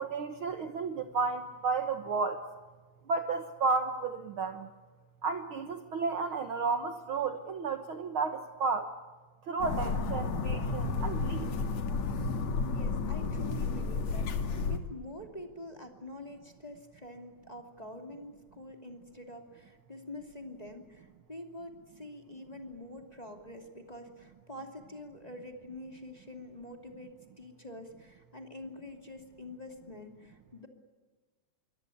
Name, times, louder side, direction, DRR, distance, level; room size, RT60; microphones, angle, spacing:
voice 1, 0.0-2.4 3.1-4.7 5.2-8.9 9.5-11.5, right 4 dB, 55° right, 7 dB, 1.7 m, -32 dB
sound 1, 9.6-14.8, left 4 dB, 70° left, 3.1 m, -32 dB
voice 2, 12.7-30.7, left 1 dB, 15° left, 3 dB, 2.5 m, -46 dB
27.0 x 23.5 x 8.6 m, 1.3 s
omnidirectional pair, 3.3 m